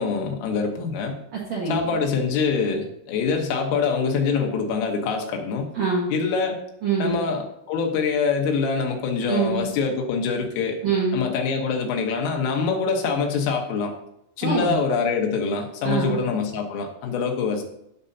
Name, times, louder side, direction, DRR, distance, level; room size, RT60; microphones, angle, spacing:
voice 1, 0.0-1.2 1.7-5.7 6.1-6.6 7.0-10.8 11.1-13.9 14.4-17.6, left 5 dB, 85° left, 2 dB, 3.8 m, -24 dB
voice 2, 1.3-1.8 5.7-6.1 6.8-7.2 9.2-9.7 10.8-11.2 14.4-14.8 15.8-16.2, right 5 dB, 75° right, -5 dB, 1.6 m, -24 dB
15.5 x 5.5 x 2.8 m, 0.77 s
omnidirectional pair, 5.7 m